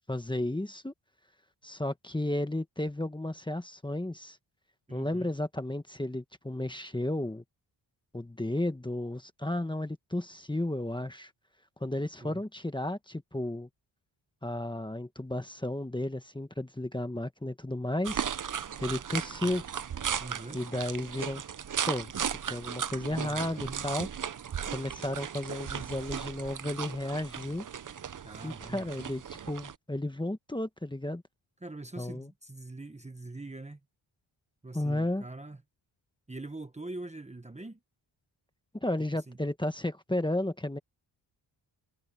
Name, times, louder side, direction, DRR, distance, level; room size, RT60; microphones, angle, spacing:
voice 1, 0.1-0.9 1.6-4.4 4.9-7.4 8.1-11.3 11.8-13.7 14.4-18.3 18.8-19.6 20.5-21.4 21.9-22.1 22.5-24.1 24.7-27.6 28.4-31.2 32.0-32.3 34.7-35.2 38.7-40.8, left 1 dB, 10° left, 1.3 m, -33 dB
voice 2, 4.9-5.3 12.2-12.4 20.2-20.6 23.1-23.9 28.2-29.1 31.6-33.8 34.6-35.6 36.3-37.8 39.1-39.4, right 2 dB, 15° right, 1.2 m, -43 dB
sound 1, 18.0-29.7, right 8 dB, 40° right, 0.7 m, -36 dB
wide cardioid pair, 100°, 48 cm